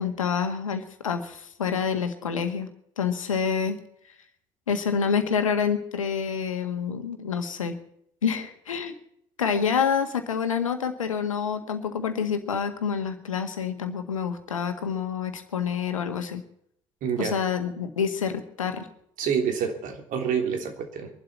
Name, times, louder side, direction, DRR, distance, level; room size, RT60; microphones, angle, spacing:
voice 1, 0.0-2.7 3.0-3.8 4.7-7.8 8.2-8.9 9.4-16.4 17.2-18.9, left 6 dB, 80° left, 8 dB, 1.7 m, -27 dB
voice 2, 17.0-17.4 19.2-21.1, right 7 dB, 55° right, 4 dB, 3.3 m, -27 dB
23.5 x 12.0 x 4.4 m, 0.71 s
figure-of-eight pair, 55°, 17 cm